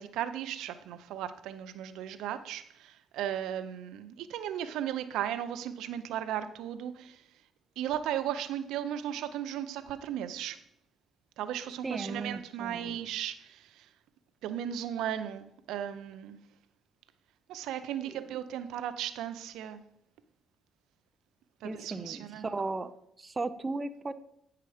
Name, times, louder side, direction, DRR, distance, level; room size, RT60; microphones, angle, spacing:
voice 1, 0.0-7.2 7.8-10.6 11.4-13.9 14.4-16.4 17.5-19.8 21.6-22.5, right 10 dB, 90° right, 0.5 m, -36 dB
voice 2, 11.8-13.0 18.0-18.2 21.6-22.9 23.2-24.1, right 3 dB, 25° right, 0.5 m, -36 dB
9.1 x 5.7 x 4.9 m
cardioid pair, 90°, 0 cm